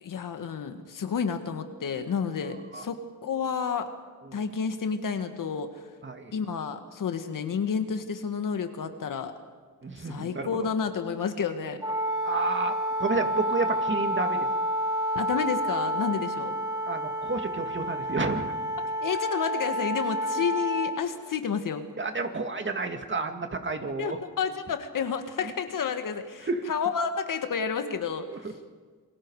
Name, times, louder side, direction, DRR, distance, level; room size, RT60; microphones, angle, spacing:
voice 1, 0.0-3.9 4.3-5.7 6.3-9.3 10.0-11.8 15.2-16.5 19.0-21.9 23.8-28.3, left 6 dB, 65° left, 7 dB, 1.9 m, -30 dB
voice 2, 9.8-10.5 12.2-14.5 16.9-18.5 22.0-24.2 26.5-26.6, right 3 dB, 35° right, 5 dB, 2.3 m, -30 dB
Wind instrument woodwind instrument, 11.8-21.0, equal, 10° right, 3.2 m, -29 dB
29.0 x 21.5 x 4.9 m, 1.5 s
cardioid pair, 80°, 35 cm